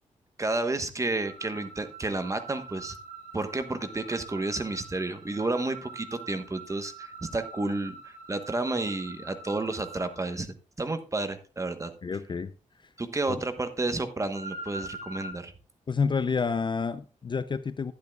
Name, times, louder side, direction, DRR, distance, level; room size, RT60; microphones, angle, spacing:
voice 1, 0.4-3.0 3.3-11.9 13.0-15.5, right 2 dB, 25° right, 1.1 m, -31 dB
sound 1, 1.2-10.3 14.3-15.3, right 3 dB, 85° right, 2.7 m, -44 dB
voice 2, 12.0-12.5 15.9-17.9, left 5 dB, 35° left, 0.5 m, -29 dB
12.0 x 10.0 x 2.3 m
cardioid pair, 95°, 13 cm